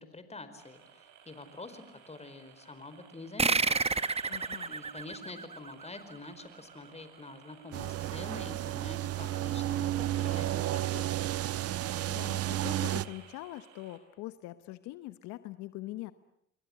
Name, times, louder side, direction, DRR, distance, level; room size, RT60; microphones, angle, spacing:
voice 1, 0.0-3.9 4.7-11.3, left 2 dB, 20° left, 11 dB, 4.9 m, -46 dB
sound 1, 0.6-14.0, right 8 dB, 75° right, 5.2 m, -55 dB
sound 2, 3.4-6.4, right 4 dB, 20° right, 1.2 m, -30 dB
voice 2, 4.3-4.8 12.1-16.1, left 16 dB, 75° left, 13 dB, 1.0 m, -43 dB
sound 3, 7.7-13.1, right 13 dB, 55° right, 1.1 m, -32 dB
29.0 x 22.5 x 8.0 m, 0.77 s
supercardioid pair, 65°, 29 cm